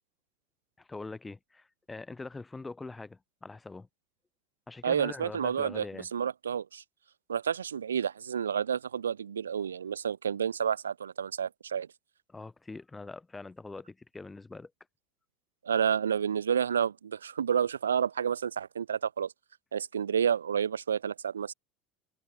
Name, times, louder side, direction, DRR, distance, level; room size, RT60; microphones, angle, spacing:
voice 1, 0.8-3.9 4.7-6.1 12.3-14.7, left 3 dB, 15° left, 3.3 m, -43 dB
voice 2, 4.8-5.8 6.1-6.8 7.3-11.9 15.6-19.3 19.7-21.5, right 8 dB, 80° right, 0.5 m, -30 dB
open air
figure-of-eight pair, 75°, 0 cm